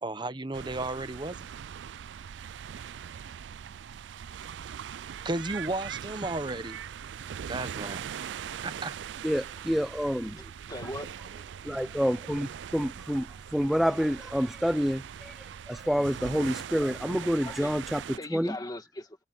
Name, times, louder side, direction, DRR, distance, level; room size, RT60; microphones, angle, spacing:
voice 1, 0.0-1.5 5.2-6.8 7.5-8.1 8.6-8.9, right 2 dB, 25° right, 1.0 m, -33 dB
sound 1, 0.5-18.2, right 8 dB, 80° right, 0.4 m, -41 dB
voice 2, 9.2-10.5 11.6-18.6, equal, ahead, 0.4 m, -28 dB
voice 3, 10.7-11.3 17.5-17.7 18.2-19.2, left 1 dB, 20° left, 1.8 m, -39 dB
head